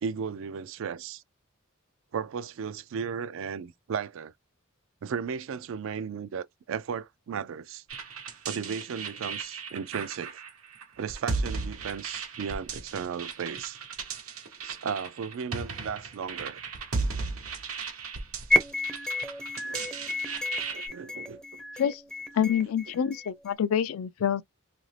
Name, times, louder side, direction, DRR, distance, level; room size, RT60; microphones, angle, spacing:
voice 1, 0.0-1.2 2.1-4.3 5.0-7.8 8.5-10.4 11.0-13.8 14.6-16.6 19.6-19.9 20.7-21.6, right 6 dB, 65° right, 0.3 m, -35 dB
sound 1, 7.9-20.9, right 4 dB, 85° right, 0.9 m, -36 dB
sound 2, 18.5-23.5, left 3 dB, ahead, 0.5 m, -31 dB
voice 2, 22.3-24.4, left 8 dB, 75° left, 0.3 m, -27 dB
2.8 x 2.5 x 3.2 m
head